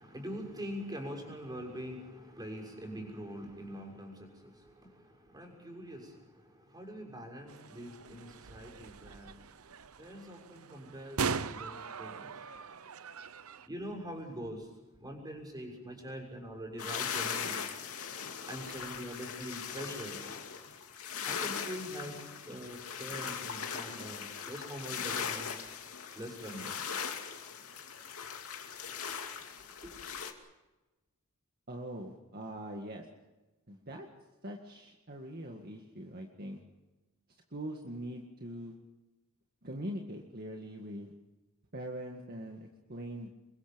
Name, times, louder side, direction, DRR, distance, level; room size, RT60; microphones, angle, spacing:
voice 1, 0.0-9.6 10.0-12.4 13.6-14.7 15.0-17.6 18.5-20.2 21.2-25.6 26.1-26.7 28.9-29.0 29.2-29.3 29.8-30.0, equal, 20° right, 1 dB, 6.5 m, -44 dB
sound 1, 7.5-13.7, right 5 dB, 85° right, 0.9 m, -40 dB
sound 2, 16.8-30.3, left 7 dB, 90° left, 2.5 m, -39 dB
voice 2, 31.7-33.1 33.7-34.1 34.4-36.6 37.5-38.7 39.6-41.1 41.7-43.3, right 1 dB, 45° right, 1 dB, 2.0 m, -42 dB
28.0 x 23.0 x 5.3 m, 1.1 s
head